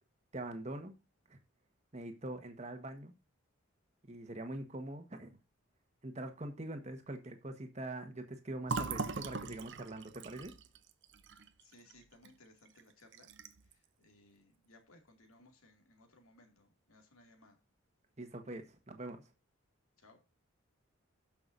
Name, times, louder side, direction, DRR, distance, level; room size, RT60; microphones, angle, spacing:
voice 1, 0.3-0.9 1.3-1.4 1.9-3.1 4.1-5.4 6.0-10.5 18.2-19.2, right 1 dB, 30° right, 6 dB, 1.4 m, -43 dB
Fill (with liquid), 8.6-12.3 12.7-12.8 13.1-13.7, right 4 dB, 55° right, 0.7 m, -41 dB
voice 2, 11.6-13.3 13.7-17.6 20.0-20.2, left 2 dB, 80° left, 4 dB, 2.4 m, -63 dB
17.5 x 6.0 x 2.6 m, 0.29 s
head